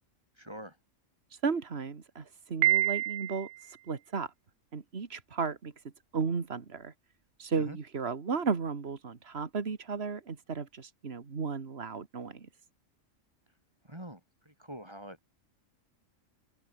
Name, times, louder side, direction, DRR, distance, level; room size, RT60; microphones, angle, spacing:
voice 1, 0.4-0.8 7.6-7.8 13.8-15.3, equal, 20° right, 6.1 m, -45 dB
voice 2, 1.4-3.5 3.9-4.3 4.7-5.7 6.1-6.9 7.4-12.5, right 5 dB, 50° right, 2.1 m, -34 dB
Piano, 2.6-3.7, right 14 dB, 75° right, 0.9 m, -27 dB
omnidirectional pair, 1.4 m